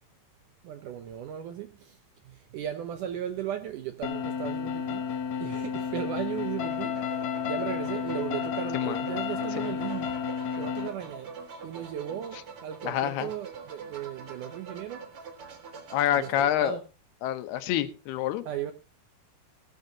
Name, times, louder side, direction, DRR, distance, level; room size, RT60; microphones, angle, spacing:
voice 1, 0.6-2.0 2.3-5.1 5.4-7.0 7.4-10.2 10.6-11.4 11.6-15.1 16.1-16.8 18.5-18.7, right 10 dB, 75° right, 1.9 m, -36 dB
sound 1, 4.0-10.9, left 7 dB, 60° left, 2.0 m, -32 dB
sound 2, 6.6-16.4, right 5 dB, 45° right, 2.1 m, -44 dB
voice 2, 12.8-13.3 15.9-16.8 17.2-18.4, left 11 dB, 80° left, 3.0 m, -27 dB
18.5 x 13.0 x 2.8 m
omnidirectional pair, 4.6 m